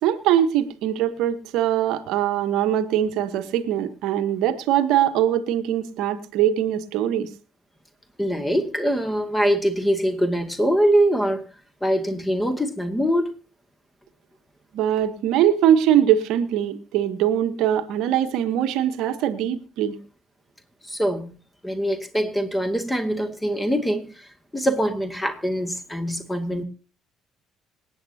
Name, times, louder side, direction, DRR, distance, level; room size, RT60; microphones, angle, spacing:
voice 1, 0.0-7.3 14.7-20.0, right 10 dB, 60° right, 1.1 m, -22 dB
voice 2, 8.2-11.4 11.8-13.3 20.9-21.3 21.6-24.3 24.5-26.6, equal, 10° left, 2.2 m, -23 dB
26.0 x 9.0 x 2.8 m
figure-of-eight pair, 50°, 0 cm